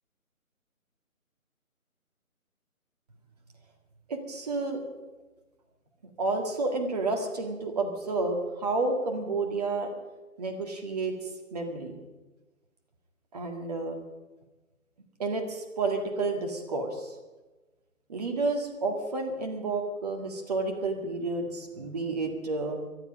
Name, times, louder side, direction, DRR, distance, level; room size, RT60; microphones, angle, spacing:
voice 1, 4.1-4.8 6.2-9.9 10.4-11.1 11.5-11.9 13.3-14.0 15.2-17.1 18.1-22.9, right 3 dB, 25° right, 3 dB, 1.9 m, -30 dB
23.5 x 10.5 x 5.2 m, 1.2 s
figure-of-eight pair, 155°, 43 cm